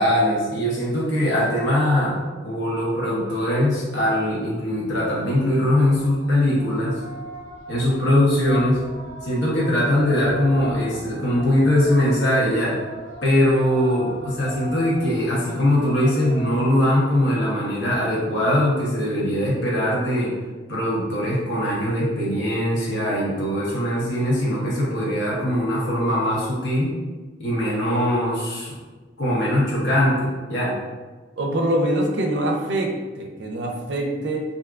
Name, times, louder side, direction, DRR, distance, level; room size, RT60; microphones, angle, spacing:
voice 1, 0.0-2.1 2.4-6.9 7.7-8.8 9.2-12.8 13.2-20.3 20.7-26.9 27.4-28.8 29.2-30.8, left 1 dB, 70° left, -5 dB, 0.8 m, -21 dB
sound 1, 4.9-16.6, equal, 40° left, 0.7 m, -39 dB
voice 2, 31.4-34.4, right 1 dB, 65° right, 2 dB, 0.5 m, -24 dB
3.4 x 2.6 x 2.4 m, 1.3 s
head